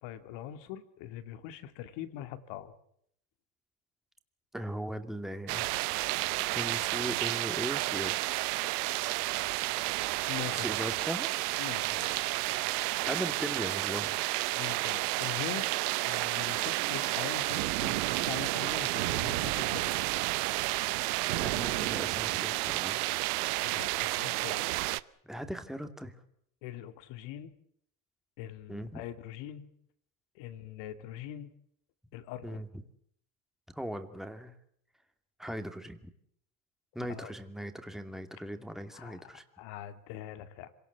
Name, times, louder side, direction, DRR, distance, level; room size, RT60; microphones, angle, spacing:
voice 1, 0.0-2.7 10.3-10.8 11.6-12.3 14.5-15.8 16.0-20.0 20.5-20.6 23.6-24.7 26.6-27.5 28.4-29.7 30.3-31.5 32.1-32.6 37.1-37.3 38.9-40.7, left 12 dB, 70° left, 10 dB, 2.5 m, -42 dB
voice 2, 4.5-5.7 6.5-8.2 10.5-11.3 13.0-14.2 19.2-19.6 21.3-23.0 25.3-26.1 28.7-29.0 32.4-32.7 33.7-34.6 35.4-36.0 36.9-39.4, equal, ahead, 7 dB, 2.5 m, -39 dB
sound 1, 5.5-25.0, right 21 dB, 85° right, 0.9 m, -31 dB
26.0 x 18.5 x 8.2 m, 0.70 s
supercardioid pair, 90°, 45 cm